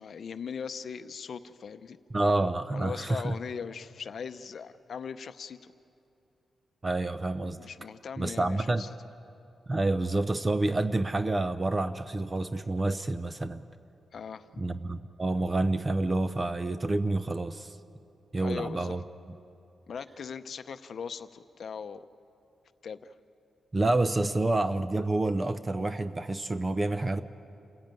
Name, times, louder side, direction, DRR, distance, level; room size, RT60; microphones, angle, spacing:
voice 1, 0.0-2.0 2.7-5.7 7.5-8.9 14.1-14.5 18.4-19.0 19.9-22.1 22.8-23.1, left 6 dB, 55° left, 11 dB, 0.7 m, -39 dB
voice 2, 2.1-3.3 6.8-7.6 8.2-8.8 9.7-13.6 14.6-17.8 18.3-19.0 23.7-27.2, right 2 dB, 20° right, 12 dB, 0.6 m, -28 dB
28.5 x 16.5 x 9.1 m, 2.7 s
wide cardioid pair, 145°, 0 cm